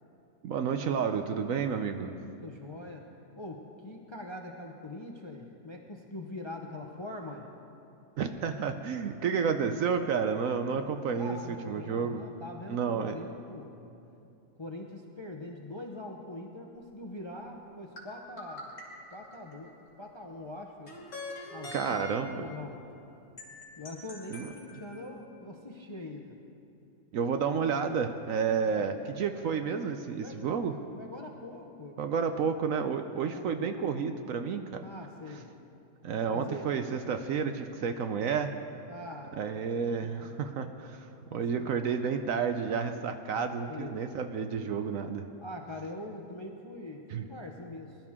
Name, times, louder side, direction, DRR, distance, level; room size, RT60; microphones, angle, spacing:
voice 1, 0.4-2.1 8.2-11.4 11.7-12.2 12.7-13.2 21.7-22.5 24.3-24.5 27.1-30.8 32.0-34.8 36.0-38.5 39.4-41.1 41.3-45.3 47.1-47.3, right 6 dB, 65° right, 7 dB, 0.9 m, -31 dB
voice 2, 2.4-3.1 3.4-7.5 11.2-13.7 14.6-18.7 19.1-21.0 21.5-22.8 23.8-26.4 28.6-28.9 30.2-32.0 32.4-32.6 33.3-33.9 34.8-35.5 36.3-36.7 38.9-39.6 40.2-40.3 41.3-41.8 43.7-44.0 45.4-48.0, left 1 dB, 30° left, 2 dB, 0.5 m, -43 dB
sound 1, 18.0-19.9 20.9-22.5 23.4-25.1, left 1 dB, 45° left, 2.9 m, -44 dB
20.5 x 12.0 x 3.6 m, 2.7 s
omnidirectional pair, 1.7 m